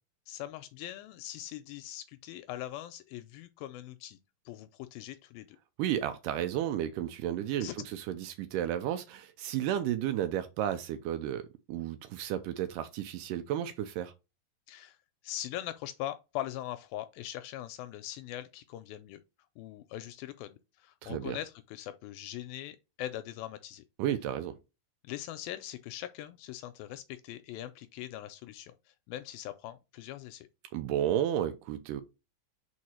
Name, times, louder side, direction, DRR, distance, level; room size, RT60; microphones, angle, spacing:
voice 1, 0.3-4.2 4.5-5.6 7.6-7.7 14.7-15.0 15.2-19.2 19.6-23.8 25.0-30.5, left 13 dB, 80° left, 2.2 m, -41 dB
voice 2, 5.8-14.1 21.0-21.4 24.0-24.6 30.7-32.0, right 11 dB, 90° right, 1.9 m, -32 dB
4.9 x 4.6 x 4.3 m
omnidirectional pair, 4.4 m